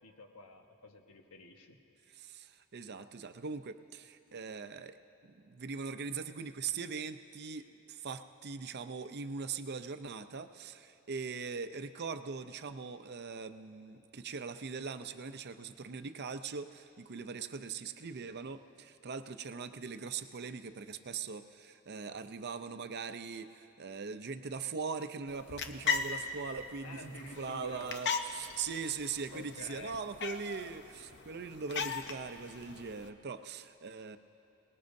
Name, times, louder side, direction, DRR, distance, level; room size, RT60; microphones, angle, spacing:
voice 1, 0.0-1.8 26.8-28.0 29.3-30.0, left 2 dB, 85° left, 3 dB, 1.3 m, -49 dB
voice 2, 2.1-34.2, right 5 dB, 50° right, 10 dB, 0.6 m, -41 dB
sound 1, 25.3-33.1, left 5 dB, 55° left, 0.7 m, -39 dB
27.0 x 19.5 x 2.7 m, 3.0 s
head